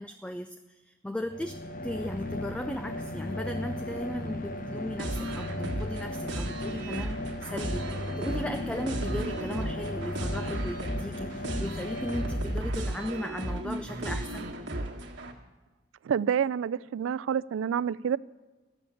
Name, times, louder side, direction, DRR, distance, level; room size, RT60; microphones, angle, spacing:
voice 1, 0.0-7.9 8.2-14.5, left 1 dB, 5° left, 8 dB, 0.3 m, -36 dB
sound 1, 1.2-13.1, left 1 dB, 45° left, 0.9 m, -36 dB
sound 2, 5.0-15.3, right 1 dB, 65° right, 1.5 m, -35 dB
voice 2, 16.0-18.2, right 8 dB, 90° right, 18 dB, 0.3 m, -28 dB
12.5 x 7.1 x 8.4 m, 1.2 s
head